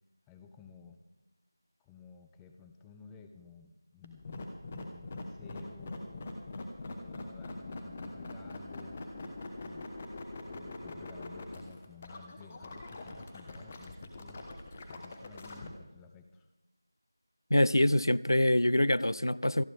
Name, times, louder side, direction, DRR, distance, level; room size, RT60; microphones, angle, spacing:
voice 1, 0.3-1.0 1.8-6.3 7.0-9.9 10.5-14.5 14.9-16.5, left 5 dB, 5° left, 0.4 m, -54 dB
sound 1, 4.0-15.7, left 2 dB, 20° left, 1.3 m, -43 dB
voice 2, 17.5-19.6, left 1 dB, 85° left, 0.5 m, -25 dB
27.0 x 9.7 x 3.5 m
figure-of-eight pair, 170°, 2 cm